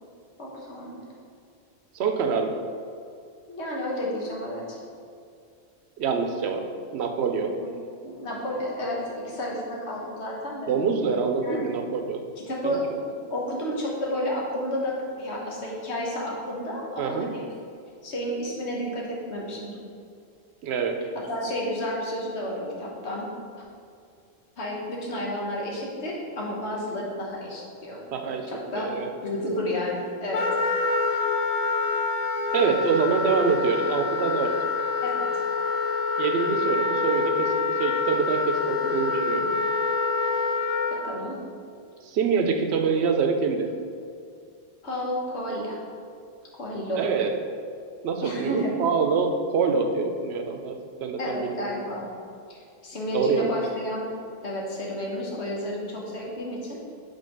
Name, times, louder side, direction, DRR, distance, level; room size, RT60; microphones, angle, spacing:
voice 1, 0.4-1.0 3.5-4.8 7.6-7.7 8.0-10.7 11.4-11.6 12.4-17.4 18.0-19.8 21.1-23.3 24.6-28.0 28.5-28.9 29.2-30.4 35.0-35.2 41.0-41.4 44.8-45.8 46.6-47.0 48.2-48.8 51.2-52.1 52.5-54.1 54.4-56.8, left 1 dB, 85° left, -3 dB, 1.4 m, -31 dB
voice 2, 1.9-2.6 6.0-6.7 6.9-7.6 10.7-12.2 12.6-12.8 17.0-17.3 20.6-21.0 28.1-28.5 28.8-29.1 32.5-34.5 36.2-37.5 37.8-39.5 42.1-43.7 46.9-47.3 48.0-51.6 53.1-53.5, right 5 dB, 75° right, 5 dB, 0.9 m, -25 dB
Wind instrument woodwind instrument, 30.3-41.0, left 4 dB, 55° left, 0.4 m, -26 dB
5.2 x 4.0 x 5.2 m, 2.3 s
omnidirectional pair, 1.1 m